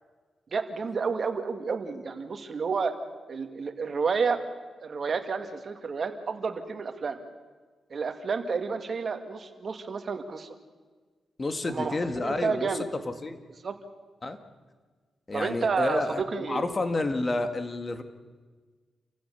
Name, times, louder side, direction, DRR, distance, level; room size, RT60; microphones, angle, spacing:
voice 1, 0.5-2.9 3.3-4.4 4.8-7.2 7.9-10.5 11.6-12.0 12.2-12.8 13.6-13.8 15.3-16.7, right 5 dB, 50° right, 7 dB, 2.0 m, -30 dB
voice 2, 11.4-12.7 13.2-13.4 14.2-14.4 15.3-18.0, left 2 dB, 35° left, 8 dB, 1.9 m, -30 dB
28.0 x 15.0 x 7.0 m, 1.4 s
cardioid pair, 80°, 0 cm